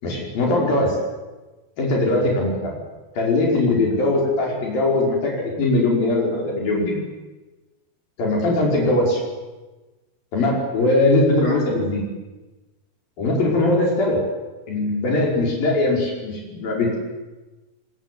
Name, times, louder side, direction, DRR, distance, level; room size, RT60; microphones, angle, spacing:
voice 1, 0.0-1.0 1.8-2.8 3.2-7.0 8.2-9.2 10.3-12.0 13.2-14.2 14.7-17.0, left 2 dB, 70° left, -1 dB, 7.3 m, -20 dB
24.0 x 21.5 x 9.5 m, 1.2 s
omnidirectional pair, 4.3 m